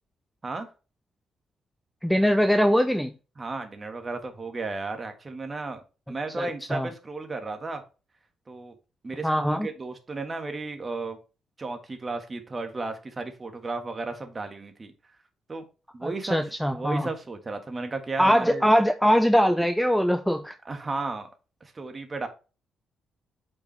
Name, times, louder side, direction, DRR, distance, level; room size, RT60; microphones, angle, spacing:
voice 1, 2.0-3.1 6.4-6.9 9.2-9.7 16.0-17.1 18.2-20.5, equal, ahead, 0.5 m, -22 dB
voice 2, 3.4-5.8 6.1-7.8 8.5-8.7 9.0-11.2 11.6-14.9 15.5-15.6 15.9-16.4 16.7-18.7 20.6-21.3 21.6-22.3, right 3 dB, 30° right, 1.6 m, -34 dB
8.1 x 5.3 x 3.3 m
cardioid pair, 90°, 0 cm